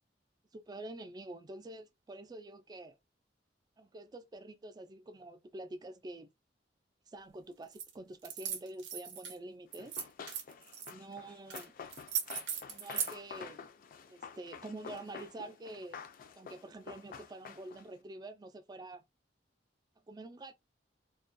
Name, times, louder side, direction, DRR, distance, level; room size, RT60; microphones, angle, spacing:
voice 1, 0.5-3.0 3.8-6.3 7.1-10.0 10.9-11.7 12.7-13.6 14.1-16.0 16.4-19.0 20.1-20.5, right 2 dB, 25° right, 0.3 m, -47 dB
sound 1, 7.7-7.9 8.2-9.3 9.7-10.9 11.5-11.6 11.9-13.1, right 8 dB, 85° right, 0.7 m, -38 dB
Run, 9.8-18.0, left 6 dB, 50° left, 0.3 m, -49 dB
2.3 x 2.1 x 2.5 m
head